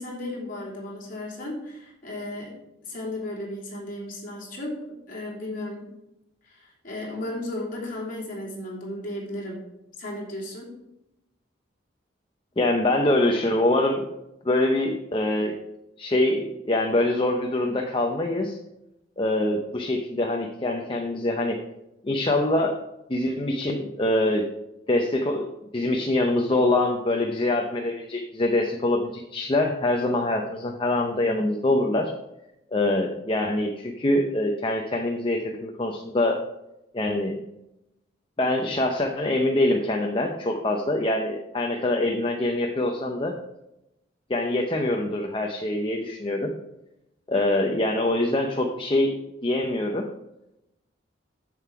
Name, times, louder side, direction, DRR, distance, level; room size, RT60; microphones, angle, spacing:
voice 1, 0.0-5.9 6.4-9.6 10.0-10.7, left 1 dB, 45° left, -4 dB, 3.1 m, -35 dB
voice 2, 12.6-14.0 14.4-15.6 16.0-18.6 19.2-21.6 22.0-22.8 23.1-24.5 24.9-25.5 25.7-32.1 32.7-36.4 36.9-37.4 38.4-43.3 44.3-46.5 47.3-49.1 49.4-50.1, left 1 dB, 25° left, 2 dB, 0.7 m, -24 dB
7.6 x 7.3 x 4.7 m, 0.88 s
head